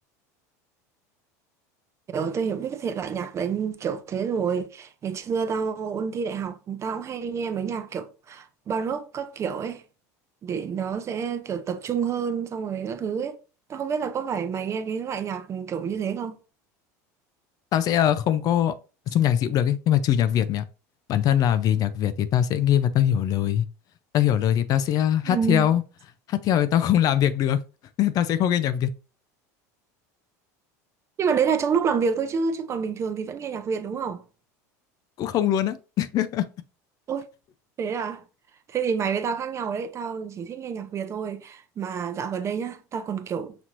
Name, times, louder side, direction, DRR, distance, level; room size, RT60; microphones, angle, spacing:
voice 1, 2.1-9.8 10.4-13.4 13.7-16.4 25.2-25.8 31.2-34.2 37.1-37.3 37.8-38.2 38.7-43.6, right 6 dB, 35° right, 0.6 m, -28 dB
voice 2, 17.7-18.7 19.1-20.6 21.1-23.7 24.1-25.8 26.3-27.6 28.0-28.9 35.2-36.5, left 10 dB, 45° left, 0.4 m, -22 dB
6.0 x 2.9 x 2.5 m
supercardioid pair, 100°, 9 cm